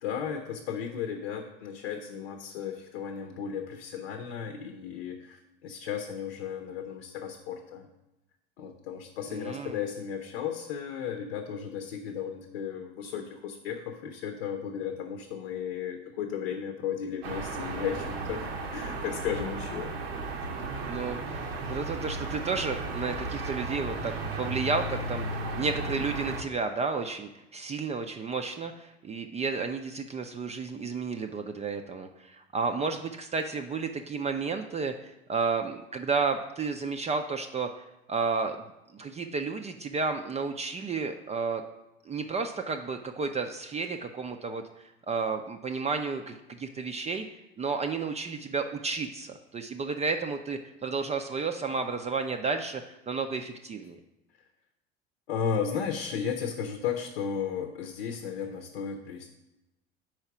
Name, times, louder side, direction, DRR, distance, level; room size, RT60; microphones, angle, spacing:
voice 1, 0.0-7.9 8.6-19.9 55.3-59.3, left 7 dB, 75° left, 4 dB, 0.8 m, -34 dB
voice 2, 9.3-9.8 20.9-21.4 21.6-41.6 42.1-44.6 45.1-54.0, right 4 dB, 20° right, 6 dB, 0.4 m, -32 dB
sound 1, 17.2-26.4, right 2 dB, 75° right, 0.9 m, -35 dB
4.8 x 4.5 x 5.9 m, 0.94 s
hypercardioid pair, 75°, 31 cm